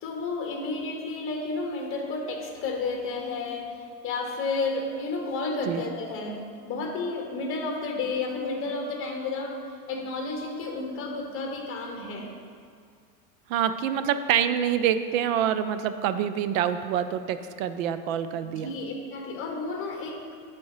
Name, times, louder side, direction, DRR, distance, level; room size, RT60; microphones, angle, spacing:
voice 1, 0.0-3.7 4.0-9.6 9.9-12.3 18.4-20.3, left 3 dB, 25° left, 1 dB, 1.1 m, -31 dB
voice 2, 13.5-18.7, right 9 dB, 55° right, 11 dB, 0.5 m, -26 dB
7.3 x 4.3 x 4.7 m, 2.1 s
supercardioid pair, 140°, 48 cm